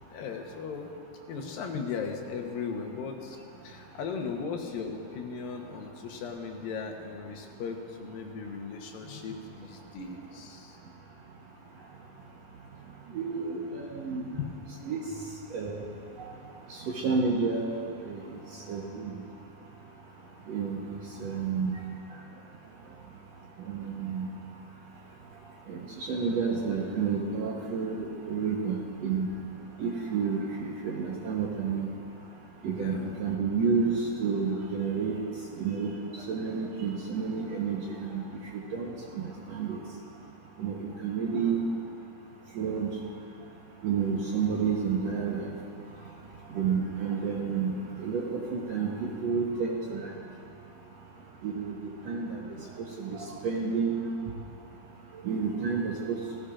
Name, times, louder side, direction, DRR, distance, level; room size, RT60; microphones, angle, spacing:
voice 1, 0.1-0.9 1.3-3.4 3.6-10.8 14.3-14.5 32.8-33.1 53.1-53.3, left 5 dB, 80° left, 3 dB, 2.8 m, -37 dB
voice 2, 13.1-14.2 14.8-15.0 15.5-15.8 17.0-17.7 18.1-18.2 18.7-19.1 20.5-20.8 21.2-21.7 23.7-24.2 25.7-25.8 26.1-28.8 29.0-29.3 29.8-31.9 32.6-35.2 35.6-35.9 36.3-37.8 38.1-38.2 38.7-38.9 39.2-39.3 39.5-39.8 40.6-41.6 42.6-42.9 43.8-45.5 46.5-47.7 48.0-48.9 49.2-50.1 51.4-51.7 52.1-52.4 53.0-53.2 53.4-54.1 55.2-56.2, right 5 dB, 70° right, -2 dB, 1.7 m, -29 dB
18.0 x 15.5 x 2.5 m, 2.5 s
omnidirectional pair, 4.0 m